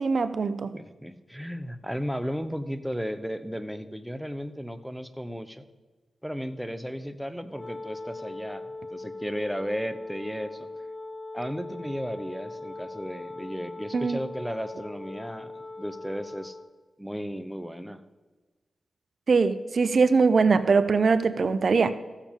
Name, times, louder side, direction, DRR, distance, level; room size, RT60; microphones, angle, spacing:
voice 1, 0.0-0.7 13.9-14.2 19.3-21.9, right 4 dB, 65° right, 13 dB, 0.5 m, -22 dB
voice 2, 0.7-5.6 6.2-10.7 11.3-16.6 17.0-18.0, equal, 5° right, 10 dB, 0.8 m, -34 dB
Wind instrument woodwind instrument, 7.5-16.7, left 2 dB, 30° left, 1.2 m, -40 dB
15.0 x 7.2 x 3.7 m, 1.3 s
cardioid pair, 45°, 0 cm